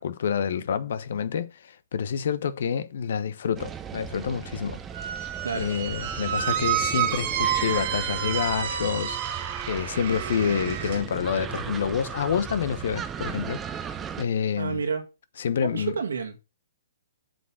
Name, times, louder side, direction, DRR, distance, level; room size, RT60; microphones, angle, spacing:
voice 1, 0.0-4.8 5.5-14.8 15.4-15.9, left 7 dB, 60° left, 0.9 m, -28 dB
sound 1, 3.6-14.2, right 8 dB, 15° right, 0.9 m, -36 dB
Squeak, 4.9-11.0, right 10 dB, 50° right, 1.6 m, -30 dB
voice 2, 14.6-15.1 15.6-16.4, right 5 dB, 70° right, 1.9 m, -30 dB
7.8 x 5.4 x 5.9 m
figure-of-eight pair, 120°, 0 cm